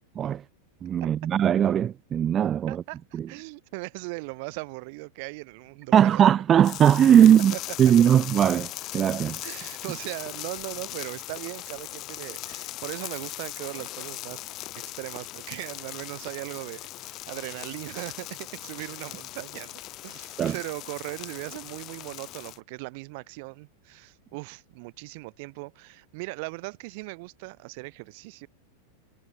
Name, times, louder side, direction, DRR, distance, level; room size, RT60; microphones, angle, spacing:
voice 1, 0.8-2.8 3.1-3.3 5.9-9.4 20.4-20.5, right 9 dB, 25° right, 2.8 m, -20 dB
voice 2, 2.7-6.3 7.5-7.9 9.4-14.4 14.8-28.5, right 29 dB, 45° right, 6.1 m, -38 dB
sound 1, 6.6-22.6, left 17 dB, 35° left, 2.7 m, -39 dB
figure-of-eight pair, 90°, 0 cm